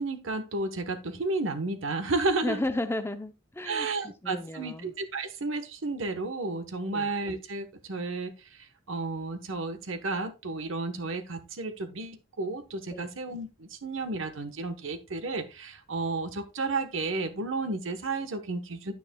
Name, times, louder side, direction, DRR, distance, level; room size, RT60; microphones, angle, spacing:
voice 1, 0.0-2.6 3.6-8.3 8.9-18.9, right 3 dB, 70° right, 1.1 m, -32 dB
voice 2, 2.4-4.9 6.9-7.1 12.9-13.1, left 1 dB, 10° left, 0.5 m, -34 dB
9.8 x 9.2 x 2.2 m
head